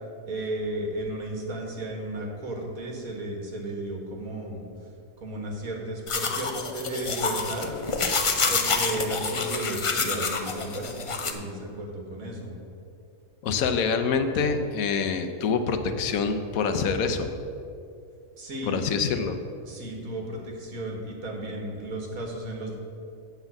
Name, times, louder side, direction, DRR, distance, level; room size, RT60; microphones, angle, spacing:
voice 1, 0.3-4.7 5.2-7.7 8.5-12.5 18.4-18.9 19.6-22.7, right 1 dB, 80° right, 1 dB, 1.9 m, -34 dB
sound 1, 6.1-11.3, left 4 dB, 55° left, 0.3 m, -28 dB
voice 2, 13.4-17.3 18.7-19.4, left 5 dB, 80° left, 8 dB, 1.2 m, -26 dB
7.8 x 5.8 x 7.2 m, 2.5 s
omnidirectional pair, 1.5 m